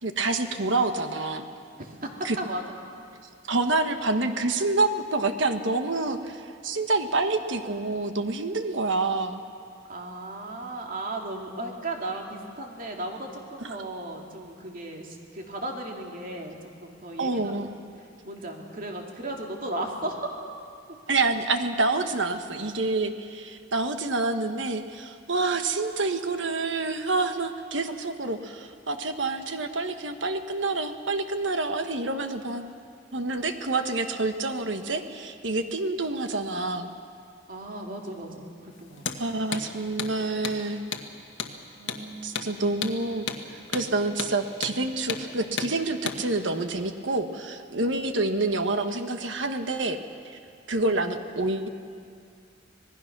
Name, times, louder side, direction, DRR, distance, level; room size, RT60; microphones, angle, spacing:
voice 1, 0.0-1.4 2.2-2.4 3.5-9.4 17.2-17.8 21.1-32.6 33.1-36.9 39.2-40.8 42.2-43.3 43.7-50.0 50.7-51.7, right 3 dB, 70° right, 7 dB, 1.3 m, -27 dB
voice 2, 1.8-2.6 9.9-17.7 18.0-20.3 37.5-39.0 41.8-42.6, right 1 dB, 45° right, 1 dB, 2.7 m, -36 dB
Hammer, 39.0-39.2 39.5-39.7 40.0-40.1 40.4-40.6 40.9-41.1 41.4-41.5 41.9-42.0 42.4-42.5 42.8-43.0 43.3-43.4 43.7-43.9 44.2-44.3 44.6-44.8 45.1-45.2 45.6-45.7 46.1-46.2, left 6 dB, 85° left, 1.5 m, -32 dB
26.0 x 19.0 x 6.1 m, 2.4 s
head